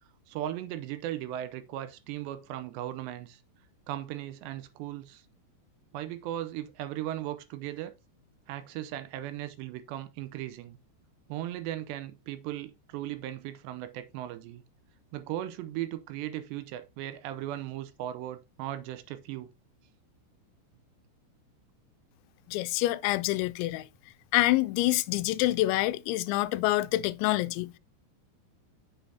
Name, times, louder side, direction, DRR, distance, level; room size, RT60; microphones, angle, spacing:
voice 1, 0.3-3.4 3.9-5.2 5.9-7.9 8.5-10.8 11.3-14.6 15.1-19.5, right 13 dB, 80° right, 2.8 m, -37 dB
voice 2, 22.5-23.9 24.3-27.7, left 17 dB, 90° left, 2.9 m, -26 dB
7.3 x 7.0 x 2.7 m
omnidirectional pair, 5.1 m